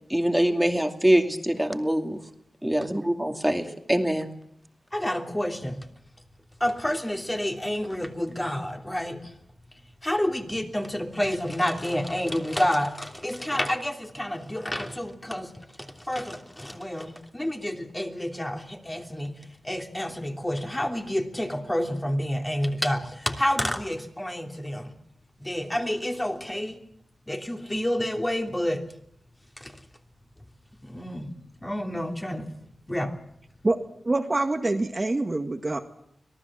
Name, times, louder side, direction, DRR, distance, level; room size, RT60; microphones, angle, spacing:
voice 1, 0.1-2.2 2.6-4.3, right 1 dB, 5° right, 2.4 m, -24 dB
voice 2, 4.9-5.9 6.6-9.3 10.0-15.5 15.8-24.9 25.4-26.8 27.3-28.9 29.6-29.8 30.8-31.3 31.6-32.5 32.9-33.2, equal, 15° left, 3.1 m, -29 dB
voice 3, 34.0-35.8, right 2 dB, 30° right, 1.8 m, -25 dB
25.5 x 18.5 x 7.5 m
wide cardioid pair, 75°, 0 cm